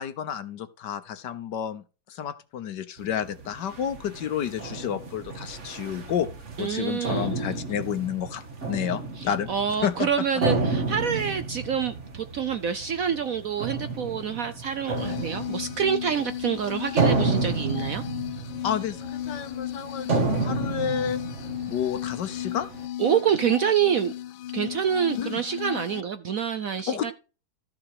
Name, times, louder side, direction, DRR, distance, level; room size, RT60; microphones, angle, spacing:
voice 1, 0.0-6.3 6.6-9.5 9.8-10.1 18.6-21.2 21.7-22.7 25.2-25.4 26.9-27.1, left 9 dB, 65° left, 1.5 m, -30 dB
sound 1, 3.0-22.9, right 3 dB, 40° right, 1.7 m, -31 dB
voice 2, 6.6-7.3 9.2-18.0 23.0-24.1 24.5-27.1, right 8 dB, 60° right, 0.9 m, -27 dB
sound 2, 15.0-26.0, left 12 dB, 85° left, 1.4 m, -35 dB
13.5 x 5.9 x 4.8 m
omnidirectional pair, 2.1 m